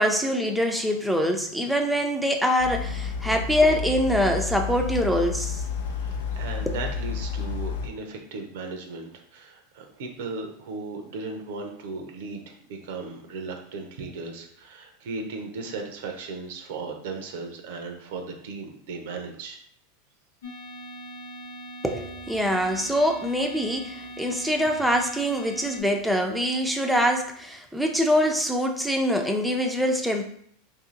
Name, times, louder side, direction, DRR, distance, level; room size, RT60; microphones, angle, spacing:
voice 1, 0.0-5.6 6.7-6.8 21.8-30.2, equal, ahead, 3 dB, 0.5 m, -24 dB
sound 1, 2.6-7.9, left 6 dB, 75° left, 0.4 m, -30 dB
voice 2, 5.9-19.6, right 4 dB, 70° right, 4 dB, 0.6 m, -36 dB
sound 2, 20.4-25.8, right 1 dB, 90° left, 0.8 m, -41 dB
2.7 x 2.6 x 3.8 m, 0.64 s
hypercardioid pair, 100°, 0 cm